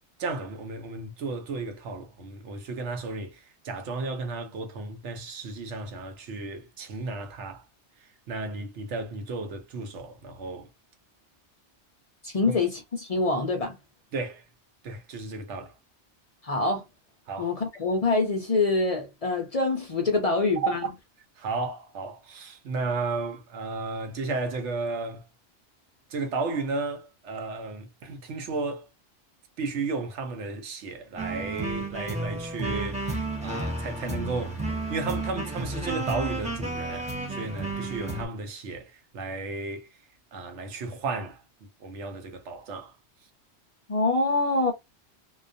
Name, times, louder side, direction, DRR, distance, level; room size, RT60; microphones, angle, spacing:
voice 1, 0.2-7.6 8.0-10.7 12.5-12.6 14.1-14.4 14.8-15.7 17.3-17.5 20.6-20.9 21.4-25.2 26.1-28.9 29.6-39.9 40.3-41.4 41.8-42.9, right 3 dB, 80° right, 1.0 m, -34 dB
voice 2, 12.2-13.8 16.4-16.8 17.4-20.8 43.9-44.7, left 3 dB, 50° left, 0.5 m, -25 dB
sound 1, 31.2-38.3, right 2 dB, 10° right, 0.5 m, -32 dB
2.3 x 2.2 x 2.5 m
omnidirectional pair, 1.2 m